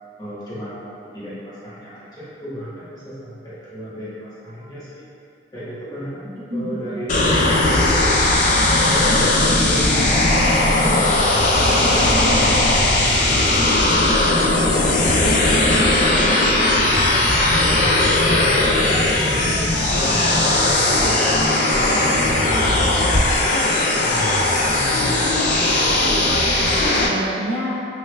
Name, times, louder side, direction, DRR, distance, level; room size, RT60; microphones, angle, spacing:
voice 1, 0.2-5.0 5.5-10.5 10.8-14.7 15.0-18.6 18.9-21.2 21.7-24.5, equal, 20° left, -11 dB, 1.0 m, -34 dB
voice 2, 6.5-7.0 15.5-16.0 20.0-20.9 26.1-27.8, right 1 dB, 70° right, -4 dB, 0.5 m, -30 dB
sound 1, 7.1-27.1, left 2 dB, 45° left, 0.4 m, -17 dB
3.3 x 3.1 x 2.2 m, 2.5 s
head